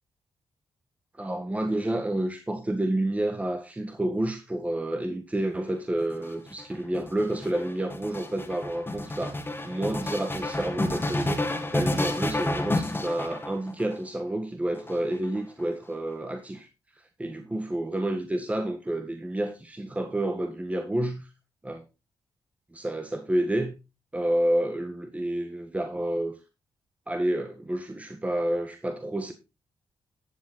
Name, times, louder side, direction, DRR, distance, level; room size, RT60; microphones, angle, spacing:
voice 1, 1.2-9.4 9.6-11.4 11.7-16.7 17.2-21.3 21.6-21.8 22.7-23.7 24.1-26.3 27.1-29.3, right 1 dB, 15° right, 1.7 m, -29 dB
sound 1, 6.0-14.0 14.8-15.6, left 2 dB, 25° left, 2.3 m, -30 dB
12.5 x 7.4 x 4.0 m
cardioid pair, 60°, 9 cm